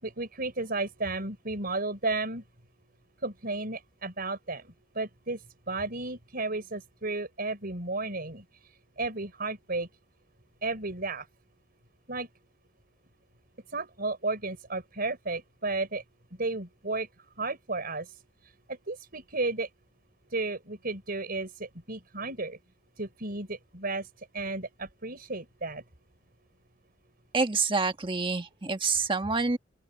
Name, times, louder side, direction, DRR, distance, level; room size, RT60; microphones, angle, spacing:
voice 1, 0.0-2.4 3.2-4.6 4.9-5.4 5.7-8.4 9.0-9.9 10.6-11.3 12.1-12.3 13.7-16.0 16.4-17.1 17.4-18.1 18.9-19.7 20.3-22.6 23.0-24.1 24.3-25.8, right 3 dB, 50° right, 5.1 m, -33 dB
voice 2, 27.3-29.6, right 4 dB, 25° right, 1.6 m, -27 dB
open air
head